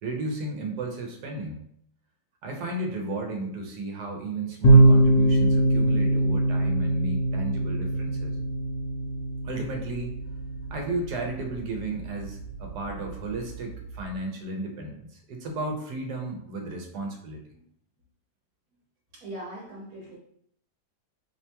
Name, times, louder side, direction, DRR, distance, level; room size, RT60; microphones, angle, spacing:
voice 1, 0.0-1.6 2.4-8.4 9.4-10.1 10.7-17.4, right 2 dB, 85° right, 2 dB, 1.3 m, -34 dB
sound 1, 4.6-14.1, right 1 dB, 60° left, 0.8 m, -23 dB
voice 2, 19.1-20.2, right 1 dB, 65° right, -8 dB, 1.3 m, -40 dB
4.7 x 2.2 x 2.8 m, 0.70 s
omnidirectional pair, 1.7 m